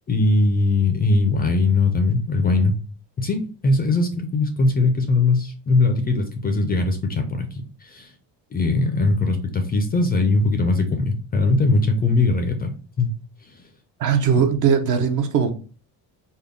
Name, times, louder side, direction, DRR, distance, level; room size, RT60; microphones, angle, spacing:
voice 1, 0.1-2.7 3.2-8.1 8.5-13.1 13.4-13.6, left 3 dB, 25° left, 0.3 m, -20 dB
voice 2, 14.0-15.5, right 6 dB, 50° right, 0.6 m, -19 dB
3.6 x 2.1 x 3.5 m
cardioid pair, 135°, 40 cm